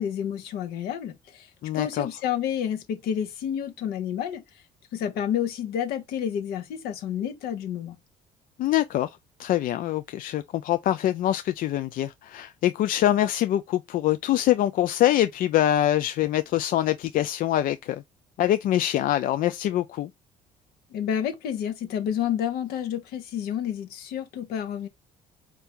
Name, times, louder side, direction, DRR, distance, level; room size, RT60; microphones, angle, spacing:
voice 1, 0.0-1.5 1.7-4.4 4.9-8.0 20.9-24.9, left 9 dB, 75° left, 1.1 m, -29 dB
voice 2, 1.6-2.1 8.6-18.0 18.4-20.1, left 13 dB, 60° left, 0.4 m, -24 dB
4.6 x 2.6 x 3.5 m
supercardioid pair, 75°, 17 cm